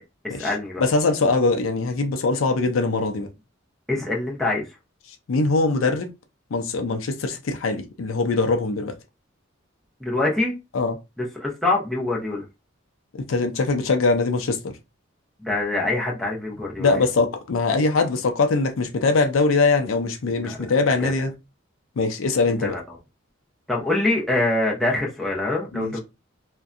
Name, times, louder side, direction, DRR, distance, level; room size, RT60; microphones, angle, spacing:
voice 1, 0.2-0.8 3.9-4.6 10.0-10.6 11.2-12.4 15.4-16.9 20.4-20.7 21.0-21.1 22.6-22.8 23.7-26.0, left 2 dB, ahead, 0.7 m, -24 dB
voice 2, 0.8-3.3 5.3-6.1 6.5-8.9 10.7-11.0 13.1-14.7 16.8-21.3 22.0-22.8 25.7-25.9, left 3 dB, 85° left, 0.5 m, -22 dB
2.6 x 2.2 x 2.4 m
head